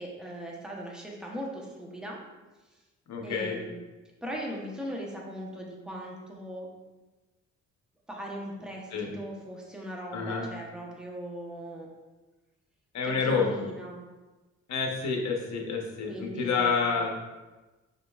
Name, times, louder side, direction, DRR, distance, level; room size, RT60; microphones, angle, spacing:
voice 1, 0.0-2.2 3.2-3.8 4.2-6.7 8.1-11.9 13.0-14.0 16.1-17.1, equal, ahead, -2 dB, 0.9 m, -39 dB
voice 2, 3.1-3.6 8.9-9.1 10.1-10.5 12.9-13.5 14.7-17.1, left 5 dB, 65° left, 1 dB, 0.9 m, -28 dB
5.2 x 3.8 x 2.4 m, 1.2 s
cardioid pair, 90°, 30 cm